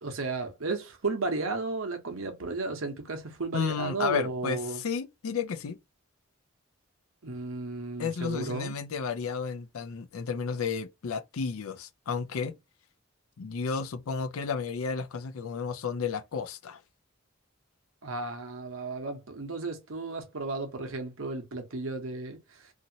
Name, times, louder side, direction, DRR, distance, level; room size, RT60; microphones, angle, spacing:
voice 1, 0.0-4.8 7.2-8.7 18.0-22.7, right 3 dB, 75° right, 0.9 m, -34 dB
voice 2, 3.5-5.8 8.0-12.5 13.4-16.8, left 6 dB, 80° left, 0.5 m, -32 dB
2.8 x 2.7 x 2.7 m
head